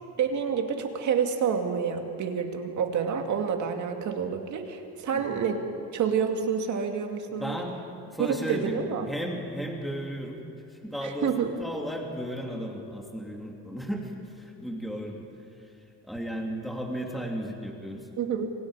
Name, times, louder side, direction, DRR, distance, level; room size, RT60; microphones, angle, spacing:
voice 1, 0.2-5.6 5.9-7.5 8.2-9.1 11.0-11.5 18.2-18.5, right 7 dB, 50° right, 4 dB, 2.3 m, -28 dB
voice 2, 5.1-5.4 7.3-7.8 8.1-10.4 10.7-15.3 16.0-18.1, equal, ahead, 0 dB, 2.7 m, -34 dB
29.0 x 25.0 x 5.0 m, 2.7 s
cardioid pair, 165°, 38 cm